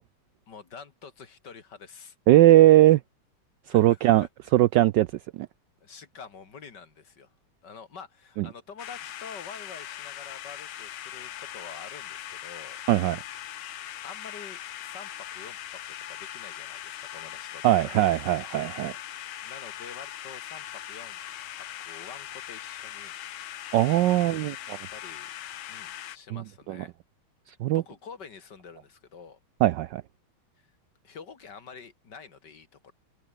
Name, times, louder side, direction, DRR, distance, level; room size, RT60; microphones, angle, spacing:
voice 1, 0.5-2.2 3.7-4.0 5.8-7.3 7.6-12.8 14.0-15.8 16.1-18.0 19.4-21.2 21.5-23.1 24.2-24.3 24.9-25.3 25.7-26.9 27.7-29.4 30.6-30.7 31.0-32.9, left 5 dB, 55° left, 2.7 m, -47 dB
voice 2, 2.3-3.0 3.7-4.3 4.5-5.1 5.3-5.5 8.4-8.5 12.9-13.2 17.6-18.9 23.7-24.8 26.3-26.4 26.7-26.8 27.6-27.8 29.6-30.0, right 15 dB, 75° right, 1.0 m, -20 dB
sound 1, 8.8-26.2, left 12 dB, 75° left, 1.8 m, -40 dB
omnidirectional pair, 2.3 m